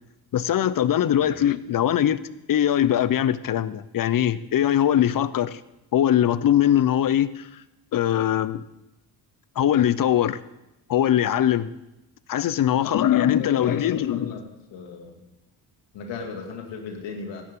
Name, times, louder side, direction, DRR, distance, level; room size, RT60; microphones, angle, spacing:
voice 1, 0.3-2.2 2.5-5.6 5.9-7.5 7.9-8.6 9.6-10.4 10.9-11.7 12.3-14.3, left 11 dB, 50° left, 16 dB, 0.8 m, -21 dB
voice 2, 1.1-1.4 12.7-13.1 13.4-15.2 15.9-17.4, left 5 dB, 75° left, 2 dB, 2.6 m, -37 dB
16.5 x 12.0 x 3.8 m, 0.91 s
supercardioid pair, 55°, 44 cm